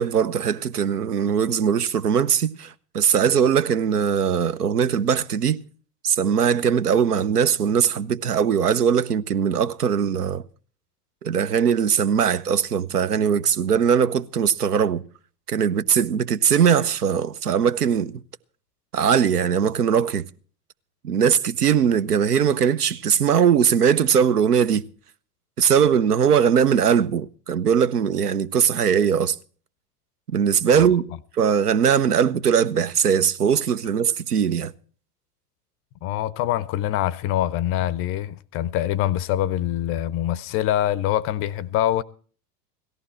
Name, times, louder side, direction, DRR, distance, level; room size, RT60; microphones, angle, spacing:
voice 1, 0.0-5.6 6.0-10.4 11.2-15.0 15.5-18.2 18.9-20.3 21.0-24.8 25.6-29.4 30.3-31.0 31.4-34.7, right 7 dB, 75° right, 0.9 m, -20 dB
voice 2, 36.0-42.0, left 12 dB, 30° left, 0.6 m, -24 dB
17.0 x 14.0 x 4.3 m
figure-of-eight pair, 85°, 47 cm